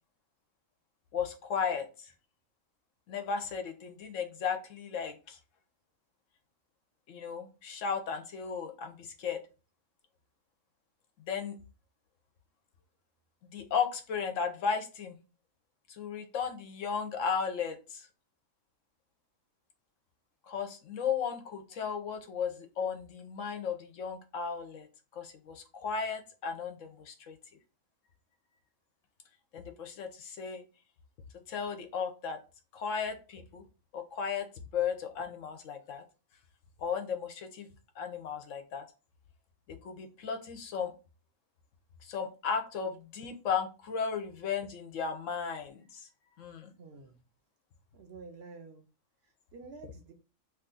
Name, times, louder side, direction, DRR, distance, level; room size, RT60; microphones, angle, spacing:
voice 1, 1.1-2.1 3.1-5.4 7.1-9.5 11.3-11.6 13.5-15.2 15.9-18.1 20.5-24.9 25.1-27.4 29.5-30.6 31.5-32.4 32.7-33.6 33.9-36.0 36.8-37.7 38.0-38.8 39.7-40.9 42.0-46.0 46.4-46.7, left 6 dB, 75° left, 1.0 m, -35 dB
voice 2, 46.8-47.2 47.9-48.8 49.5-50.1, right 4 dB, 60° right, 0.8 m, -49 dB
3.0 x 2.4 x 3.8 m
omnidirectional pair, 1.4 m